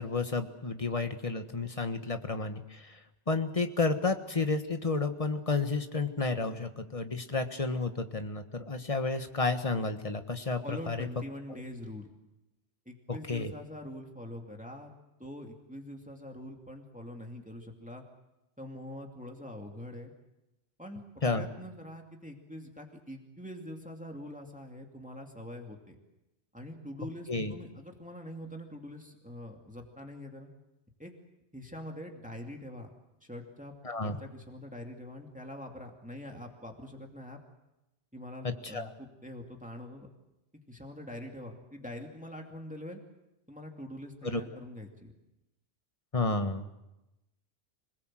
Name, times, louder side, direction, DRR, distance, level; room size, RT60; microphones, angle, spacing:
voice 1, 0.0-3.0 3.3-11.1 13.3-13.5 21.2-21.5 27.3-27.5 33.8-34.2 38.4-38.9 44.2-44.4 46.1-46.7, left 3 dB, 30° left, 7 dB, 1.5 m, -31 dB
voice 2, 10.6-12.1 12.9-14.9 15.2-18.0 18.6-20.1 20.8-26.0 26.5-30.5 31.0-31.1 31.5-32.9 33.2-33.7 34.0-37.4 38.1-40.1 40.7-43.0 43.5-45.1, left 1 dB, 5° right, 2 dB, 2.5 m, -44 dB
26.0 x 20.5 x 7.7 m, 0.96 s
omnidirectional pair, 1.2 m